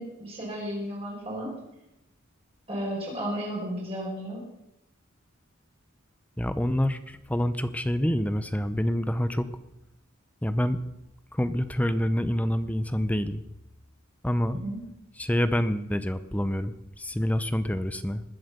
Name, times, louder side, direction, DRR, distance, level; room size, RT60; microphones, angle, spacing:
voice 1, 0.0-1.6 2.7-4.4 14.5-14.8, equal, 30° right, -4 dB, 4.9 m, -33 dB
voice 2, 6.4-9.5 10.4-10.8 11.3-13.4 14.2-14.6 15.2-18.2, equal, 5° left, 12 dB, 0.6 m, -27 dB
20.5 x 7.9 x 6.7 m, 0.88 s
head